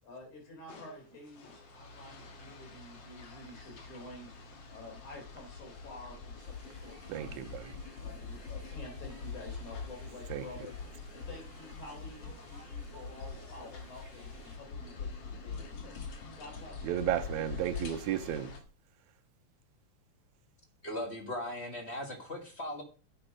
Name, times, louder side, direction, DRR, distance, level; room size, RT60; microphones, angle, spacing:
voice 1, 0.0-4.3 4.7-7.5 8.0-10.8 11.1-16.0 16.4-17.3, left 2 dB, 70° left, 5.5 m, -50 dB
sound 1, 0.7-18.6, left 4 dB, 55° left, 2.5 m, -44 dB
sound 2, 6.4-14.6, equal, 5° left, 2.7 m, -57 dB
voice 2, 7.1-7.8 10.3-10.5 16.8-18.5, right 11 dB, 75° right, 2.1 m, -33 dB
voice 3, 20.8-22.8, left 1 dB, 30° left, 1.2 m, -38 dB
8.8 x 8.3 x 5.0 m
omnidirectional pair, 3.5 m